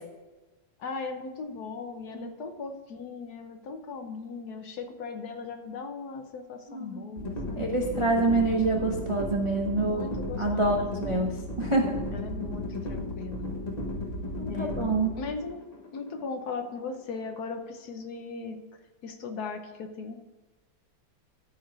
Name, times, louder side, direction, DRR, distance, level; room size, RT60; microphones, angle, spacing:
voice 1, 0.8-7.7 9.8-11.2 12.1-13.5 14.5-14.9 15.2-15.6 15.9-18.6 19.0-20.2, left 4 dB, 60° left, 6 dB, 1.3 m, -38 dB
voice 2, 6.7-7.1 7.6-10.1 10.4-11.3 11.6-12.0 14.4-15.1, right 2 dB, 50° right, 1 dB, 0.3 m, -26 dB
sound 1, 7.2-17.2, left 1 dB, 25° left, 1.1 m, -35 dB
13.5 x 4.7 x 4.7 m, 1.2 s
omnidirectional pair, 2.1 m